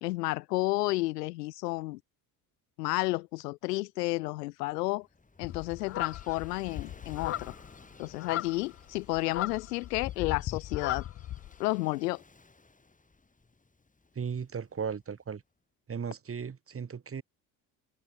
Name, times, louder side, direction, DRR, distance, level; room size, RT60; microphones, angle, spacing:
voice 1, 0.0-2.0 2.8-5.1 5.4-7.5 8.0-11.0 11.6-12.2, left 21 dB, 90° left, 0.5 m, -31 dB
Gull seagull / Waves surf, 4.8-15.3, left 3 dB, 15° left, 5.1 m, -57 dB
sound 1, 5.4-11.6, left 12 dB, 30° left, 0.5 m, -37 dB
voice 2, 14.2-15.4 15.9-17.2, right 6 dB, 30° right, 2.2 m, -36 dB
hypercardioid pair, 70°, 46 cm